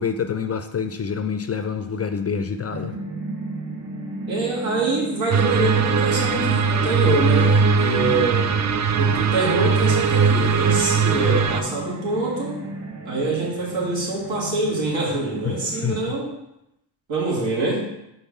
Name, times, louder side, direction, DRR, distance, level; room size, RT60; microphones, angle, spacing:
voice 1, 0.0-3.0 8.0-8.2 11.9-12.0 15.4-16.0, left 6 dB, 35° left, 9 dB, 0.4 m, -27 dB
sound 1, 2.7-16.1, right 2 dB, 60° right, 1.2 m, -35 dB
voice 2, 4.3-8.5 9.0-12.6 13.0-16.3 17.1-17.9, right 2 dB, 75° right, -3 dB, 2.4 m, -25 dB
sound 2, 5.3-11.6, right 5 dB, 40° right, 0.5 m, -20 dB
5.4 x 3.9 x 6.0 m, 0.85 s
cardioid pair, 95°, 47 cm